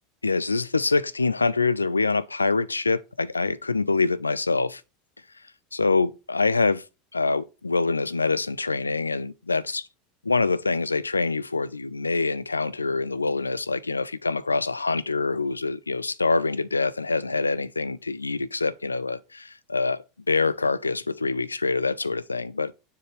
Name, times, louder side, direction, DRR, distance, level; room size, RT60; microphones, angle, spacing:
voice 1, 0.2-4.8 5.7-6.8 7.1-9.9 10.2-22.7, left 3 dB, 85° left, 0.4 m, -25 dB
6.9 x 6.7 x 3.1 m
figure-of-eight pair, 80°, 0 cm